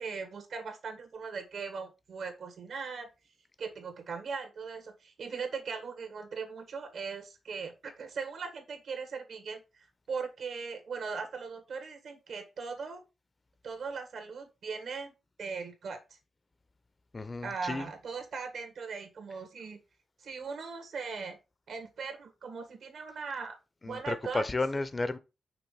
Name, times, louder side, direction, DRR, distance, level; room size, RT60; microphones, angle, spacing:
voice 1, 0.0-3.1 3.6-13.0 13.6-15.1 15.4-16.2 17.4-19.8 20.2-21.4 21.7-23.6 23.8-24.4, right 5 dB, 75° right, 1.7 m, -39 dB
voice 2, 17.1-17.9 23.8-25.2, left 2 dB, 30° left, 0.5 m, -32 dB
5.9 x 3.4 x 5.4 m
wide cardioid pair, 115°, 0 cm